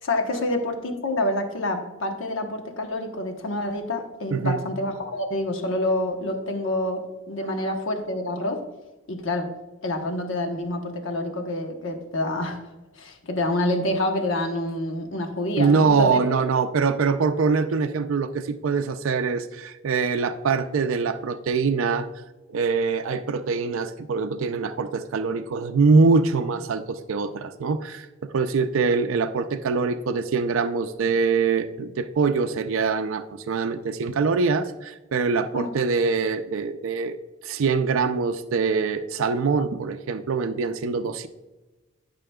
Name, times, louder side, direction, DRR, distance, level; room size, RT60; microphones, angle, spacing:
voice 1, 0.0-8.6 9.1-9.5 9.8-12.6 13.0-16.4 35.5-35.8, left 1 dB, 65° left, 5 dB, 1.0 m, -27 dB
voice 2, 15.6-22.1 22.5-37.2 37.4-41.3, right 4 dB, 70° right, 7 dB, 0.4 m, -23 dB
12.0 x 5.8 x 2.3 m, 1.1 s
head